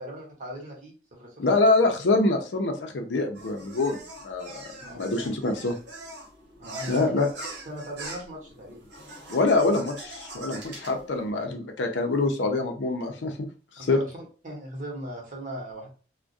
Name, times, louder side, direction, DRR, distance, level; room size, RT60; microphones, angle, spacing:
voice 1, 0.0-1.4 4.8-5.1 6.6-7.2 7.6-8.8 13.8-15.9, right 1 dB, 45° right, -1 dB, 0.9 m, -38 dB
voice 2, 1.4-4.6 5.0-5.8 6.9-7.3 9.3-13.5 13.8-14.0, left 2 dB, 90° left, 5 dB, 0.5 m, -25 dB
sound 1, 3.3-11.3, right 1 dB, 80° right, 0.9 m, -42 dB
2.3 x 2.2 x 2.5 m, 0.37 s
head